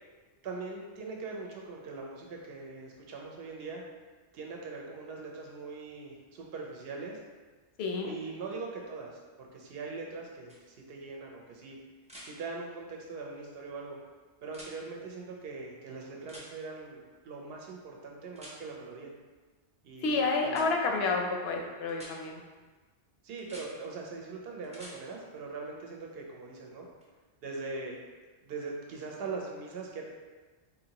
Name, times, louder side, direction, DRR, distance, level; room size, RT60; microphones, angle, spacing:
voice 1, 0.4-3.8 4.3-7.2 7.9-11.8 12.2-14.0 14.4-19.1 19.8-20.6 23.2-26.8 27.4-28.0 28.4-30.0, right 3 dB, 65° right, 0 dB, 0.8 m, -41 dB
voice 2, 7.8-8.1 20.0-22.4, left 3 dB, 65° left, 2 dB, 0.7 m, -29 dB
sound 1, 10.5-10.6 12.0-12.3 14.5-14.7 16.3-16.5 18.3-18.6 20.5-20.7 21.9-22.1 23.4-23.7 24.6-25.0 27.0-27.1, equal, 10° right, 0.4 m, -48 dB
4.1 x 2.7 x 2.9 m, 1.3 s
omnidirectional pair, 1.2 m